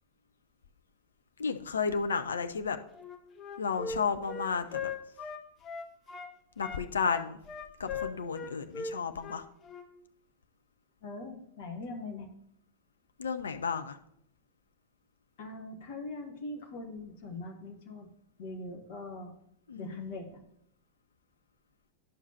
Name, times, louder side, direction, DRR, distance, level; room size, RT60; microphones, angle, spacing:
voice 1, 1.4-2.8 3.6-4.9 6.6-7.4 7.8-9.5 13.2-14.0 19.7-20.2, left 5 dB, 70° left, 7 dB, 0.5 m, -32 dB
Wind instrument woodwind instrument, 2.9-6.3 6.6-9.9, left 5 dB, 25° left, 0.8 m, -39 dB
voice 2, 11.0-12.3 15.4-18.1 18.4-19.3 19.7-20.4, left 2 dB, 55° left, 3 dB, 1.4 m, -42 dB
11.0 x 6.3 x 2.8 m, 0.73 s
figure-of-eight pair, 90°, 0 cm